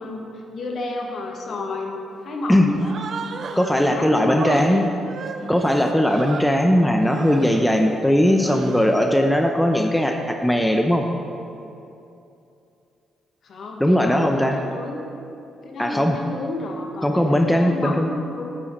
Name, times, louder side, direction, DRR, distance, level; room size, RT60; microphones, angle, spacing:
voice 1, 0.0-3.0 3.5-4.8 13.4-15.1 15.6-18.5, left 1 dB, 55° left, 2 dB, 1.5 m, -31 dB
Human voice, 2.8-4.0 4.3-6.7 7.0-7.7 8.2-9.0, right 5 dB, 55° right, 0.5 m, -35 dB
voice 2, 3.6-4.9 5.5-11.0 13.8-14.6 15.8-16.2 17.0-18.1, equal, 5° left, 4 dB, 0.8 m, -19 dB
11.5 x 8.5 x 4.3 m, 2.7 s
hypercardioid pair, 45°, 0 cm